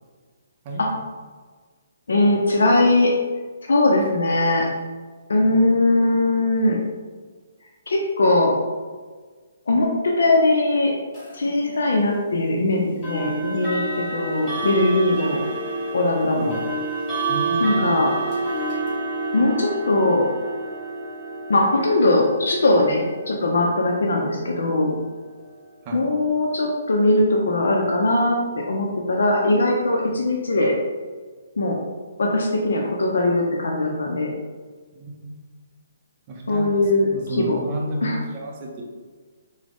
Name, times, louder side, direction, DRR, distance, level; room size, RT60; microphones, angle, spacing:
voice 1, 2.1-3.1 3.6-4.7 5.3-6.8 7.9-8.5 9.7-10.9 11.3-15.4 15.9-16.5 17.6-18.1 19.3-20.3 21.5-24.9 25.9-30.7 31.6-31.8 32.2-34.3 36.5-37.6 38.0-38.2, left 2 dB, 80° left, 0 dB, 0.5 m, -20 dB
sound 1, 11.1-11.3 13.0-25.9, right 2 dB, 15° left, 0.8 m, -29 dB
voice 2, 17.3-17.9 25.8-26.1 34.9-35.4 36.3-36.7 37.1-38.8, right 1 dB, 20° right, -1 dB, 0.5 m, -32 dB
3.7 x 2.0 x 3.4 m, 1.5 s
hypercardioid pair, 175°, 0 cm